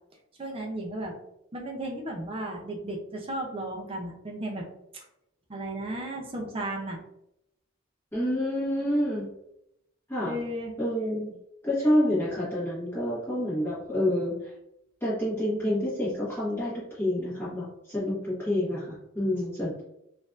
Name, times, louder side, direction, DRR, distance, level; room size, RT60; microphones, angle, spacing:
voice 1, 0.4-1.2 1.5-4.7 4.9-5.0 5.5-7.0 10.2-10.7, right 1 dB, 30° right, 1 dB, 0.6 m, -34 dB
voice 2, 8.1-9.3 10.1-10.4 10.8-11.3 11.6-14.5 15.0-16.7 17.0-19.8, left 1 dB, 10° left, -10 dB, 1.3 m, -28 dB
3.9 x 2.6 x 2.5 m, 0.80 s
head